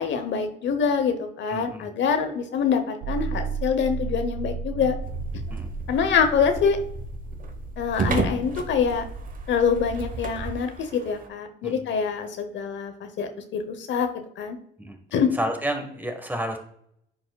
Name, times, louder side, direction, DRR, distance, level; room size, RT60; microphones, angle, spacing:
voice 1, 0.0-5.0 5.9-6.8 7.8-9.0 9.5-14.6 15.1-15.3, left 6 dB, 70° left, 7 dB, 0.9 m, -25 dB
voice 2, 1.5-1.9 5.5-5.7 11.6-11.9 14.8-15.0 15.3-16.6, equal, 10° right, 5 dB, 1.2 m, -30 dB
sound 1, 3.0-9.9, right 4 dB, 85° right, 0.9 m, -34 dB
sound 2, 5.0-11.3, right 4 dB, 45° right, 1.0 m, -33 dB
10.0 x 4.8 x 2.3 m, 0.69 s
cardioid pair, 90°, 20 cm